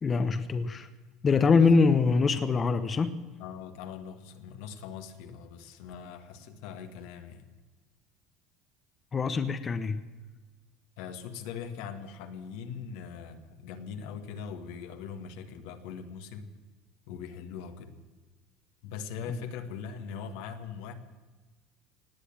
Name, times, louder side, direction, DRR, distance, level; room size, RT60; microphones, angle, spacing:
voice 1, 0.0-0.9 1.2-3.2 9.1-10.0, left 4 dB, 30° left, 10 dB, 0.9 m, -24 dB
voice 2, 3.4-7.4 11.0-16.5 17.1-17.9 18.8-20.9, left 7 dB, 75° left, 7 dB, 1.7 m, -41 dB
18.0 x 8.5 x 8.8 m, 1.3 s
supercardioid pair, 110°, 0 cm